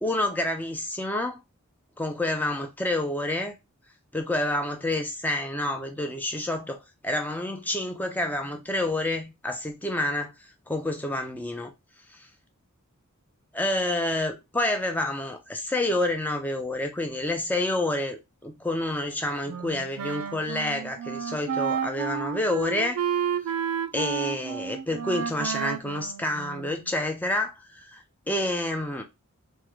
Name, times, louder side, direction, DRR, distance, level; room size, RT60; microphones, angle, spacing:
voice 1, 0.0-1.4 2.0-3.5 4.1-11.7 12.1-12.3 13.5-23.0 23.9-29.0, left 1 dB, 10° left, 0.4 m, -28 dB
Wind instrument woodwind instrument, 19.5-26.9, right 7 dB, 75° right, 0.3 m, -31 dB
3.5 x 2.1 x 3.0 m
head